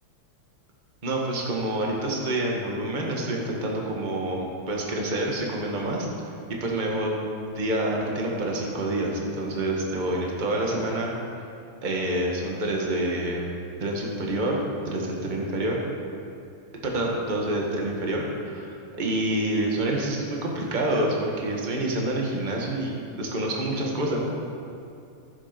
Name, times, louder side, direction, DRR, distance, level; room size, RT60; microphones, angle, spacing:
voice 1, 1.0-6.1 6.6-7.2 7.5-11.1 11.8-13.5 13.8-15.8 16.8-24.2, right 1 dB, 25° right, -1 dB, 1.5 m, -27 dB
15.5 x 7.4 x 5.2 m, 2.6 s
omnidirectional pair, 2.4 m